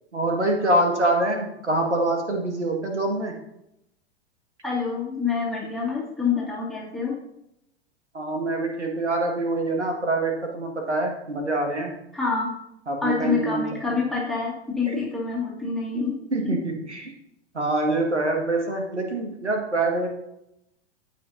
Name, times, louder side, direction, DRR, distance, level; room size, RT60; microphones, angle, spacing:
voice 1, 0.1-3.3 8.1-11.9 12.9-14.0 14.9-15.0 16.3-17.1 17.5-20.1, right 2 dB, 85° right, 2 dB, 1.8 m, -25 dB
voice 2, 4.6-7.2 12.1-12.6 13.0-16.1 16.4-16.6, left 5 dB, ahead, -4 dB, 2.1 m, -27 dB
15.0 x 5.2 x 2.7 m, 0.84 s
figure-of-eight pair, 100°, 34 cm